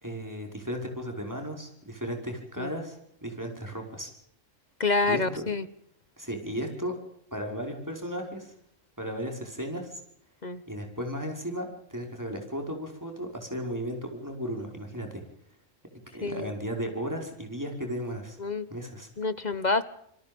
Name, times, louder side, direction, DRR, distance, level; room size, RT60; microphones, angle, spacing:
voice 1, 0.0-4.1 5.1-5.5 6.2-6.9 7.3-8.5 9.0-10.0 10.7-15.2 15.9-18.4 18.7-19.1, equal, 15° right, 5.4 m, -35 dB
voice 2, 4.8-5.7 10.4-10.6 16.2-16.5 18.4-18.7 19.2-19.8, left 3 dB, 35° left, 1.2 m, -27 dB
27.5 x 23.0 x 5.4 m
omnidirectional pair, 1.4 m